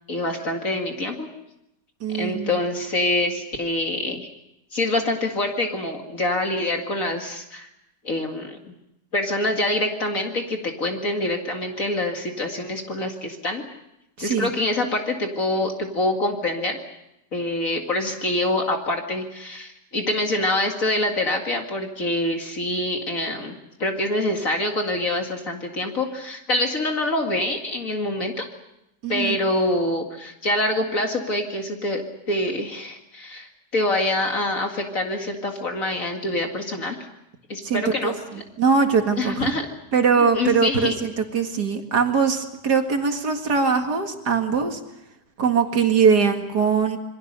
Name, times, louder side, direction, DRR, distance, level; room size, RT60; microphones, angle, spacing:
voice 1, 0.1-1.3 2.1-4.3 4.7-7.7 8.0-8.7 9.1-13.6 14.2-16.8 17.3-28.5 29.1-32.0 32.3-37.0 37.5-38.4 39.2-39.7 40.3-41.0, left 1 dB, 50° left, 3 dB, 2.4 m, -25 dB
voice 2, 2.0-2.5 14.2-14.5 29.0-29.4 37.6-38.1 38.6-39.5 39.9-44.8 45.4-47.0, right 5 dB, 70° right, 4 dB, 2.5 m, -21 dB
27.0 x 22.5 x 6.8 m, 0.86 s
omnidirectional pair, 1.8 m